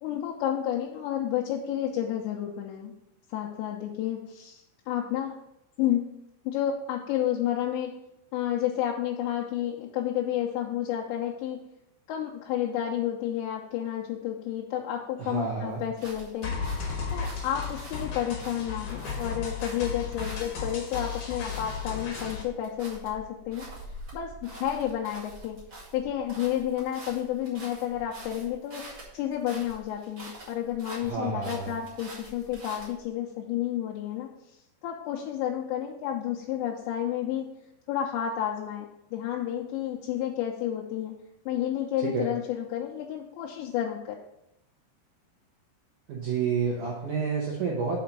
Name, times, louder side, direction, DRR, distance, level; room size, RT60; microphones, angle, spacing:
voice 1, 0.0-2.9 3.3-5.3 5.8-6.1 6.5-7.9 8.3-11.6 12.1-16.5 17.1-23.7 24.1-25.6 25.9-28.8 29.1-34.6 34.8-37.5 37.9-41.1 41.5-44.2, left 11 dB, 85° left, -2 dB, 2.9 m, -31 dB
voice 2, 15.2-15.8 31.0-31.7 42.1-42.3 46.1-48.0, right 5 dB, 75° right, -3 dB, 1.8 m, -29 dB
sound 1, 15.7-33.1, right 1 dB, 40° right, 1.5 m, -46 dB
sound 2, 16.4-22.4, left 5 dB, 60° left, 2.5 m, -34 dB
5.9 x 5.5 x 5.3 m, 0.82 s
omnidirectional pair, 5.1 m